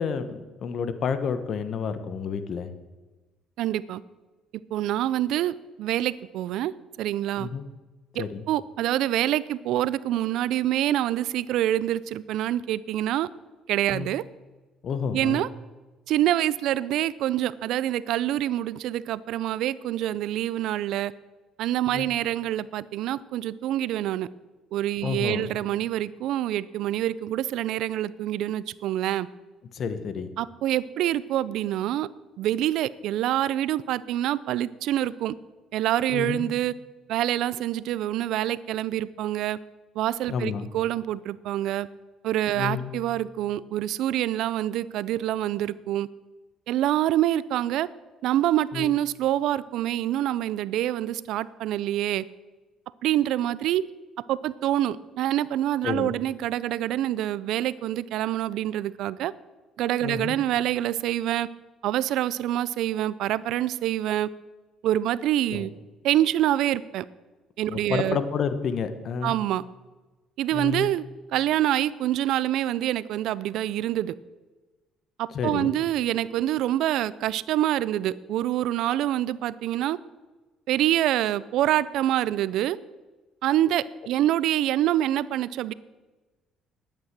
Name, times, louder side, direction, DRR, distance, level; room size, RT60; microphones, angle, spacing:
voice 1, 0.0-2.7 7.4-7.6 8.2-8.4 13.9-14.1 14.8-15.4 21.9-22.1 25.0-25.5 29.7-30.3 36.1-36.5 40.3-40.7 42.5-42.9 48.7-48.9 55.8-56.1 60.0-60.4 65.5-65.7 67.7-69.3 70.5-70.9 75.3-75.7, left 6 dB, 55° left, 11 dB, 1.2 m, -30 dB
voice 2, 3.6-4.0 4.7-6.7 7.0-7.5 8.2-13.3 13.7-14.2 15.1-15.5 16.1-21.1 21.6-24.3 24.7-29.3 30.4-32.1 32.4-35.3 35.7-36.7 37.1-39.6 40.0-41.9 42.2-46.1 46.7-47.9 48.2-52.2 53.0-53.8 54.3-59.3 59.8-61.5 61.8-64.3 64.8-65.7 66.0-67.1 67.6-68.2 69.2-69.6 70.4-71.0 71.3-74.1 75.2-80.0 80.7-82.8 83.4-85.7, right 13 dB, 75° right, 19 dB, 0.4 m, -26 dB
11.5 x 9.0 x 7.5 m, 1.2 s
cardioid pair, 90°, 0 cm